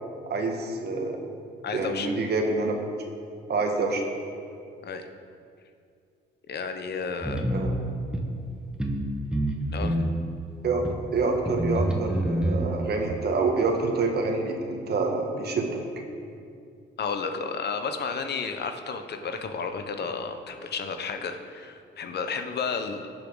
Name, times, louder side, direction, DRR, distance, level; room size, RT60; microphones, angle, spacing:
voice 1, 0.3-1.2 1.7-2.8 3.5-4.0 7.5-7.7 10.6-10.8 11.1-15.8, right 3 dB, 55° right, 3 dB, 1.7 m, -27 dB
voice 2, 1.6-2.1 4.8-5.1 6.5-7.5 9.7-10.0 17.0-23.1, left 5 dB, 55° left, 7 dB, 1.0 m, -32 dB
sound 1, 7.2-7.7 8.1-8.2 8.8-9.1 9.3-10.1 10.9-11.0 11.5-12.7, right 1 dB, 5° right, 1.5 m, -26 dB
17.5 x 7.2 x 4.0 m, 2.4 s
cardioid pair, 90°, 20 cm